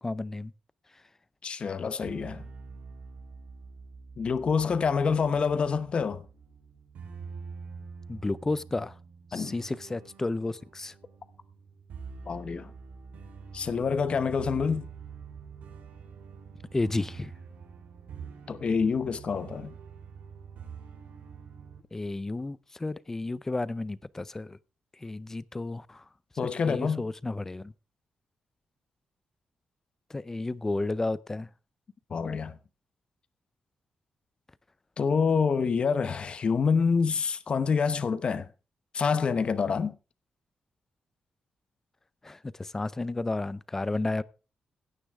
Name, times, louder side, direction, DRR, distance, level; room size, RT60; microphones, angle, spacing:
voice 1, 0.0-0.5 8.1-8.9 9.3-10.9 16.7-17.3 21.9-24.6 25.0-26.0 26.4-27.7 30.1-31.5 42.2-44.2, left 2 dB, 15° left, 0.5 m, -32 dB
voice 2, 1.4-2.5 4.2-6.2 9.3-9.5 12.3-12.7 13.5-14.9 18.5-19.7 26.4-27.0 32.1-32.6 35.0-38.5 38.9-40.0, left 5 dB, 40° left, 0.8 m, -27 dB
sound 1, 2.0-21.8, right 5 dB, 90° right, 3.8 m, -46 dB
16.5 x 9.8 x 3.5 m
wide cardioid pair, 150°, 3 cm